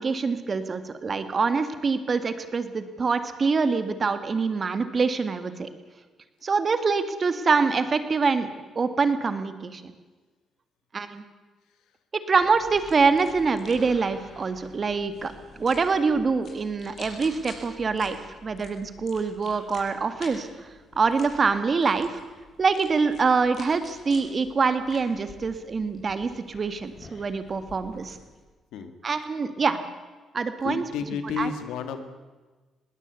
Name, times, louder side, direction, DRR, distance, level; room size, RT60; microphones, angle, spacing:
voice 1, 0.0-5.7 6.4-8.5 8.8-9.8 10.9-11.2 12.3-20.5 21.0-22.2 22.6-28.2 29.0-29.8 30.3-30.8 31.2-31.5, right 4 dB, 40° right, 10 dB, 2.0 m, -25 dB
sound 1, 12.4-28.4, left 3 dB, 55° left, 6.8 m, -49 dB
voice 2, 30.6-32.1, left 6 dB, 90° left, 9 dB, 2.1 m, -31 dB
20.5 x 17.5 x 8.3 m, 1.3 s
cardioid pair, 90°, 0 cm